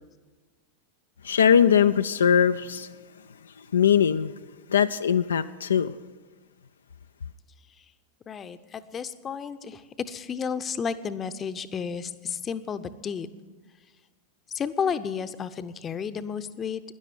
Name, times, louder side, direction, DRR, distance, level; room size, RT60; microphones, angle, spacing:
voice 1, 1.2-2.9 3.7-4.3 4.7-5.9, left 8 dB, 70° left, 0.4 m, -21 dB
voice 2, 8.3-9.8 10.1-13.3 14.5-16.8, left 6 dB, 25° left, 0.7 m, -32 dB
12.5 x 10.5 x 9.2 m
figure-of-eight pair, 90°, 0 cm